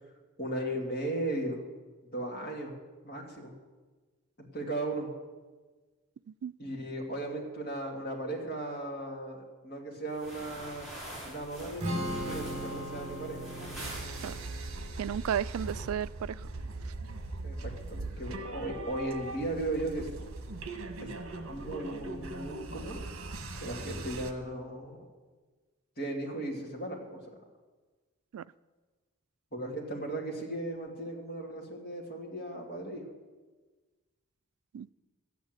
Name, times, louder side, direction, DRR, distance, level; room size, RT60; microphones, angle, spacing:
voice 1, 0.4-1.6 2.1-2.8 3.0-3.5 4.5-5.1 6.6-10.9 11.2-13.5 17.4-20.1 21.0-21.2 21.5-23.0 23.5-25.0 26.0-27.2 29.5-33.0, right 1 dB, 45° left, -1 dB, 2.6 m, -36 dB
sound 1, 10.1-14.8, equal, ahead, 4.8 m, -44 dB
Strum, 11.8-18.0, equal, 30° right, 2.3 m, -40 dB
sound 2, 13.8-24.3, right 2 dB, 70° right, 1.3 m, -40 dB
voice 2, 15.0-16.4 28.3-28.4 34.7-34.9, right 9 dB, 85° right, 17 dB, 0.3 m, -33 dB
12.5 x 9.3 x 8.0 m, 1.3 s
head